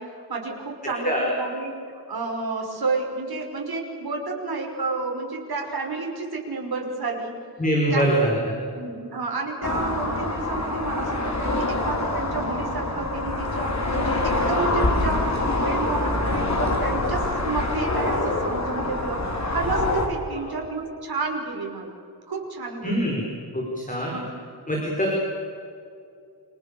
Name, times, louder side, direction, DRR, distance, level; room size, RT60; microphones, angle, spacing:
voice 1, 0.0-1.8 2.1-7.4 7.9-8.5 8.7-21.9 22.3-23.0 24.1-24.3, right 3 dB, 60° right, 1 dB, 5.9 m, -30 dB
voice 2, 7.6-8.4 20.4-20.5 22.8-23.2 23.5-24.1 24.7-25.1, right 1 dB, 20° left, -2 dB, 5.5 m, -23 dB
sound 1, 9.6-20.1, left 2 dB, 40° left, 4.3 m, -25 dB
29.0 x 28.0 x 7.1 m, 2.4 s
wide cardioid pair, 140°, 41 cm